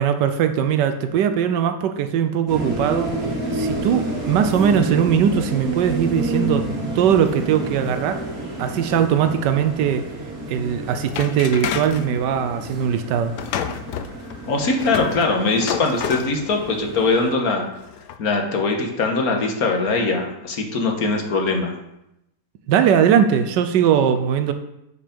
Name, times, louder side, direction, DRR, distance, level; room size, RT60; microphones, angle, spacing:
voice 1, 0.0-3.1 3.5-6.7 6.9-8.2 8.6-10.1 10.5-13.3 22.7-24.5, right 8 dB, 85° right, 8 dB, 1.3 m, -20 dB
sound 1, 2.5-17.3, right 2 dB, 55° right, 3.0 m, -30 dB
sound 2, 11.1-12.0 13.3-16.3 17.0-17.2 17.8-18.2, left 9 dB, 75° left, 1.2 m, -29 dB
voice 2, 14.5-17.6 18.2-21.7, left 3 dB, 60° left, 2 dB, 1.7 m, -21 dB
9.0 x 5.1 x 5.2 m, 0.85 s
omnidirectional pair, 1.8 m